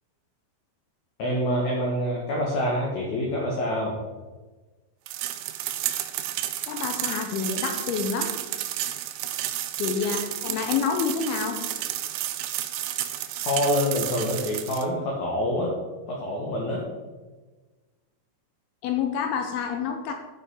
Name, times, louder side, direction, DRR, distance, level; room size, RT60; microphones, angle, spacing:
voice 1, 1.2-3.9 13.4-15.7 16.1-16.8, left 1 dB, 60° left, -2 dB, 2.1 m, -26 dB
sound 1, 5.1-14.9, right 13 dB, 85° right, 2.8 m, -31 dB
voice 2, 6.7-8.4 9.8-11.6 18.8-20.1, left 6 dB, 80° left, 4 dB, 2.4 m, -28 dB
12.0 x 5.7 x 4.7 m, 1.3 s
omnidirectional pair, 5.0 m